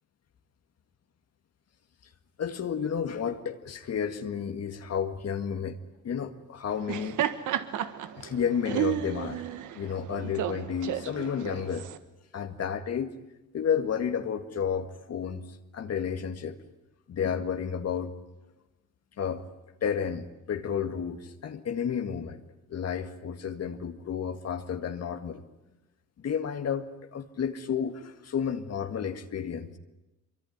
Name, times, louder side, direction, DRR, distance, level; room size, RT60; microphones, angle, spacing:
voice 1, 2.4-5.8 6.0-7.2 8.2-9.4 9.8-11.9 12.3-13.1 13.5-15.5 15.7-16.6 17.1-18.1 19.2-19.4 19.8-22.4 22.7-25.4 26.2-26.9 27.1-29.8, left 7 dB, 55° left, 7 dB, 1.9 m, -31 dB
Laughter, 6.7-12.0, right 11 dB, 80° right, 1.6 m, -32 dB
24.5 x 24.0 x 9.5 m, 1.0 s
cardioid pair, 90°, 30 cm